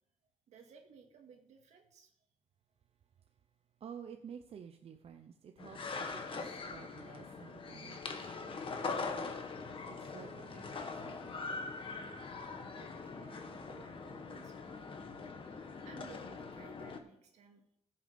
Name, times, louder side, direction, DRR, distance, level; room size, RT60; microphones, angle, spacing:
voice 1, 0.5-2.1 12.8-14.9 15.8-17.6, right 6 dB, 85° right, 3 dB, 2.3 m, -58 dB
voice 2, 3.8-9.3 9.9-11.2, right 7 dB, 60° right, 6 dB, 0.8 m, -52 dB
sound 1, 5.6-17.0, left 4 dB, 50° left, 1.7 m, -42 dB
15.0 x 7.2 x 5.2 m, 0.75 s
cardioid pair, 90°, 11 cm